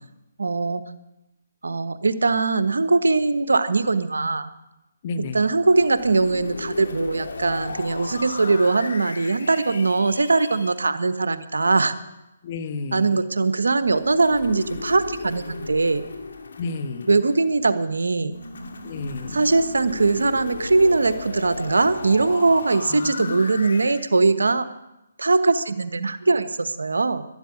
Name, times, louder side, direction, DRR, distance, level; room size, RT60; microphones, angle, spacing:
voice 1, 0.4-0.8 1.6-4.5 5.3-11.9 12.9-16.0 17.1-18.3 19.3-24.6 25.2-27.3, right 3 dB, 85° right, 12 dB, 1.2 m, -21 dB
voice 2, 5.0-5.5 12.4-13.3 16.6-17.1 18.8-19.4 22.9-23.4, left 4 dB, 40° left, 11 dB, 1.3 m, -32 dB
sound 1, 5.6-10.7 13.8-17.6 18.3-24.1, left 3 dB, 75° left, 2.3 m, -35 dB
12.0 x 11.5 x 9.8 m, 0.94 s
hypercardioid pair, 150°, 0 cm